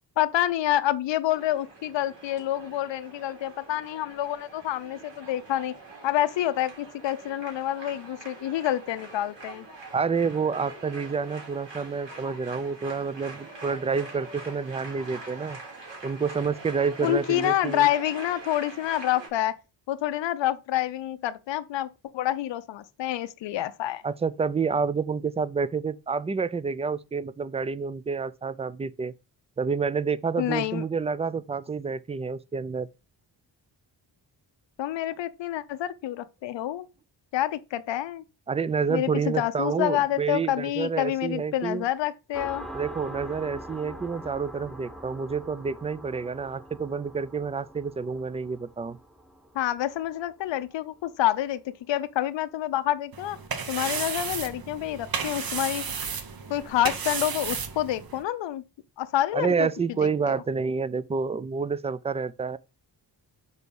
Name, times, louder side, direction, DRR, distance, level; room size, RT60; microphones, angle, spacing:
voice 1, 0.2-5.7 6.0-9.7 17.0-19.6 19.9-21.9 22.1-24.0 30.4-30.8 34.8-36.9 37.3-38.2 38.9-42.7 49.5-53.4 53.7-55.9 56.5-58.6 59.0-59.7 60.3-60.4, left 13 dB, 85° left, 0.6 m, -28 dB
sound 1, 1.3-19.3, right 3 dB, 80° right, 3.3 m, -44 dB
voice 2, 9.9-15.6 16.0-17.9 24.0-29.1 29.6-32.9 38.5-41.9 42.7-49.0 59.3-62.6, right 5 dB, 15° right, 0.3 m, -28 dB
sound 2, 42.3-51.6, equal, ahead, 0.9 m, -44 dB
sound 3, 53.1-58.2, right 6 dB, 55° right, 1.1 m, -33 dB
6.2 x 4.1 x 5.2 m
cardioid pair, 110°, 43 cm